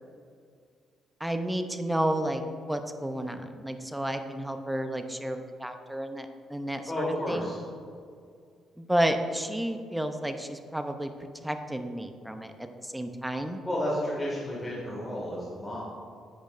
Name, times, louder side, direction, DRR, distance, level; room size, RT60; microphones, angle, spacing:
voice 1, 1.2-7.5 8.8-11.1 11.4-13.6, right 1 dB, 5° right, 7 dB, 0.7 m, -31 dB
voice 2, 4.0-4.5 6.9-7.6 13.6-15.8, left 1 dB, 15° left, -5 dB, 2.0 m, -32 dB
10.5 x 8.6 x 2.6 m, 2.2 s
cardioid pair, 90°, 0 cm